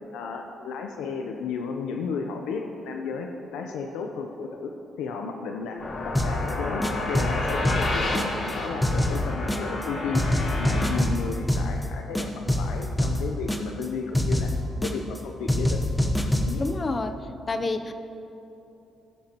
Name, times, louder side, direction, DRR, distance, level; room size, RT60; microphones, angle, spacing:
voice 1, 0.1-4.7 5.0-10.2 10.6-14.5 14.8-15.9 16.5-16.6, left 5 dB, 90° left, 3 dB, 0.7 m, -33 dB
sound 1, 5.8-10.9, left 2 dB, 55° left, 2.1 m, -30 dB
sound 2, 6.1-6.5 6.8-8.5 8.8-9.8 10.1-11.8 12.1-13.8 14.1-15.2 15.5-16.7, left 1 dB, 10° left, 1.0 m, -25 dB
voice 2, 16.6-17.2 17.5-17.9, left 3 dB, 30° left, 9 dB, 0.6 m, -28 dB
17.0 x 10.5 x 3.0 m, 3.0 s
cardioid pair, 90°, 0 cm